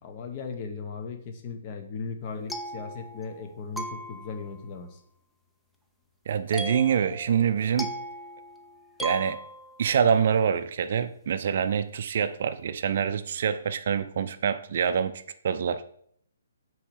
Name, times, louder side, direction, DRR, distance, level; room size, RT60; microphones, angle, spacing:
voice 1, 0.0-5.0, left 5 dB, 30° left, 6 dB, 1.0 m, -37 dB
sound 1, 2.2-3.5 3.8-4.6 6.5-10.0, right 1 dB, 5° left, 0.5 m, -38 dB
voice 2, 6.3-7.9 9.0-9.4 9.8-15.1 15.4-15.8, right 7 dB, 50° right, 10 dB, 0.5 m, -25 dB
8.5 x 3.1 x 4.7 m, 0.65 s
figure-of-eight pair, 130°, 0 cm